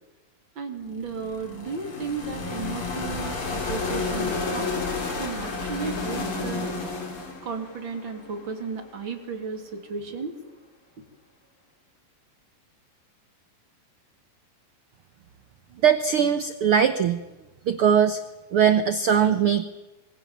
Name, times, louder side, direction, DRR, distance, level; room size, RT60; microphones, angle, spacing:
voice 1, 0.5-4.8 5.2-6.7 7.4-10.4, right 5 dB, 35° right, 5 dB, 3.2 m, -34 dB
sound 1, 0.9-8.9, left 3 dB, 40° left, 3.9 m, -31 dB
voice 2, 15.8-17.2 17.7-18.2 18.5-19.6, right 8 dB, 80° right, 10 dB, 1.2 m, -20 dB
26.5 x 23.0 x 7.3 m, 1.1 s
omnidirectional pair, 3.9 m